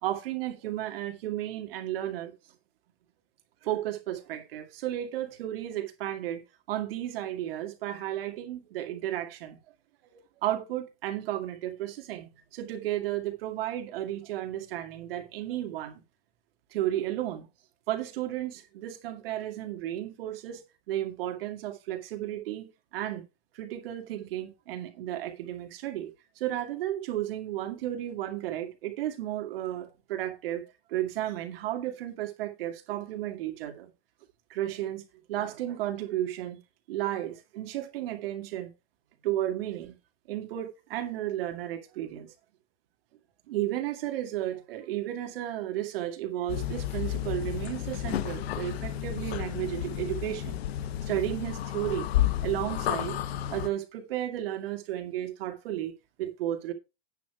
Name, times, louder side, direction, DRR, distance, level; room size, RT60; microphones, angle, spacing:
voice 1, 0.0-2.3 3.6-6.4 6.7-9.6 10.1-16.0 16.7-17.5 17.9-23.3 23.5-33.9 34.5-35.0 35.3-36.6 36.9-38.7 39.2-40.0 40.3-42.3 43.5-50.6 51.0-52.1 52.4-53.2 53.5-55.9 56.2-56.7, right 13 dB, 65° right, 2.2 m, -33 dB
sound 1, 46.5-53.7, left 12 dB, 70° left, 1.0 m, -31 dB
9.3 x 6.2 x 4.7 m
supercardioid pair, 155°, 32 cm